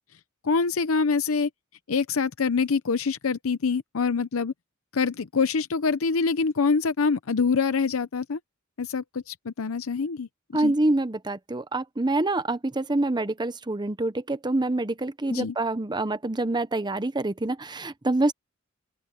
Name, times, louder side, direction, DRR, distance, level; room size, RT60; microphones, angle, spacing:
voice 1, 0.4-1.5 1.9-4.5 4.9-8.4 8.8-10.7 15.3-15.5, left 5 dB, 90° left, 0.7 m, -25 dB
voice 2, 10.5-18.3, right 2 dB, 20° right, 0.8 m, -26 dB
open air
head